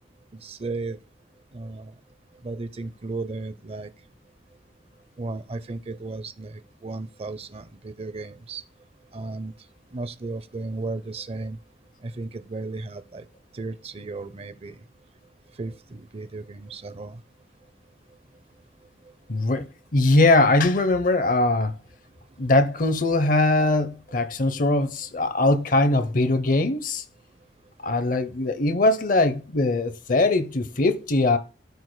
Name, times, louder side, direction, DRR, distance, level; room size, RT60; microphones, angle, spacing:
voice 1, 0.3-1.0 1.5-1.9 2.4-3.9 5.2-8.6 9.1-9.5 9.9-11.6 12.0-13.3 13.5-14.8 15.6-17.2, right 3 dB, 35° right, 0.5 m, -34 dB
voice 2, 19.3-21.7 22.4-27.0 27.8-31.4, left 2 dB, 50° left, 0.6 m, -21 dB
12.5 x 4.7 x 2.2 m
head